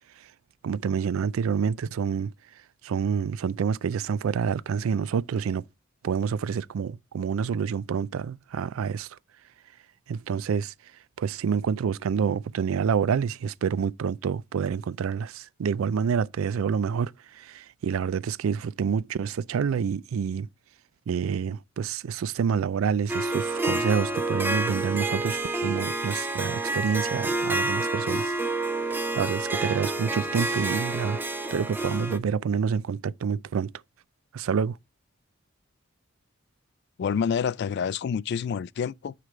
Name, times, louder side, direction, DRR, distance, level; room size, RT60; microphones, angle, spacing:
voice 1, 0.6-2.3 2.8-5.6 6.0-9.1 10.1-10.7 11.2-20.5 21.1-28.3 28.8-31.2 31.5-33.7 34.3-34.8, right 6 dB, 80° right, 0.4 m, -28 dB
Harp, 23.1-32.2, right 2 dB, 10° right, 0.6 m, -28 dB
voice 2, 37.0-39.1, left 7 dB, 55° left, 0.3 m, -28 dB
9.5 x 3.4 x 4.9 m
head